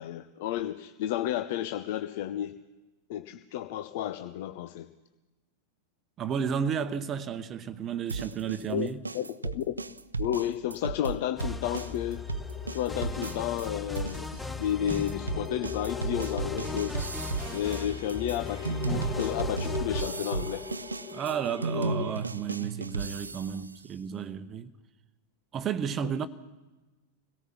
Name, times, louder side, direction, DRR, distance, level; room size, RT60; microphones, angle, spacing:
voice 1, 0.0-2.5 3.1-4.9 8.7-8.9 9.1-9.8 10.2-12.2 12.7-14.3 14.6-16.9 17.5-20.7 21.7-22.1, left 11 dB, 50° left, 0.7 m, -32 dB
voice 2, 6.2-9.0 21.1-24.7 25.5-26.3, right 8 dB, 30° right, 0.9 m, -32 dB
sound 1, 8.1-13.7 13.9-23.7, right 4 dB, 80° right, 0.6 m, -35 dB
sound 2, 11.4-20.0, left 4 dB, 5° left, 1.2 m, -38 dB
sound 3, 11.9-21.7, left 6 dB, 30° left, 3.4 m, -41 dB
26.5 x 17.5 x 5.9 m
figure-of-eight pair, 90°, 0 cm